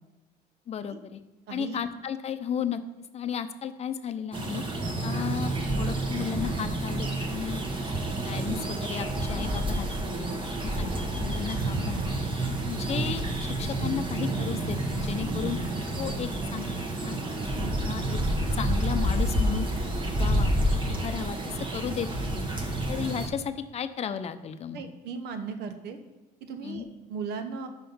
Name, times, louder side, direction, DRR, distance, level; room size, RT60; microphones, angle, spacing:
voice 1, 0.7-1.2 1.5-2.8 3.1-4.6 5.0-7.6 8.2-10.3 10.6-10.9 11.2-12.3 12.6-15.6 16.0-19.7 20.2-20.5 20.9-22.5 22.9-24.9 26.6-26.8, left 8 dB, 40° left, 10 dB, 0.6 m, -34 dB
voice 2, 1.5-1.8 10.0-10.4 24.7-26.0 26.4-27.7, right 5 dB, 75° right, 8 dB, 0.9 m, -37 dB
sound 1, 4.3-23.3, right 1 dB, 30° right, 1.2 m, -29 dB
5.6 x 5.4 x 5.5 m, 1.1 s
cardioid pair, 110°, 17 cm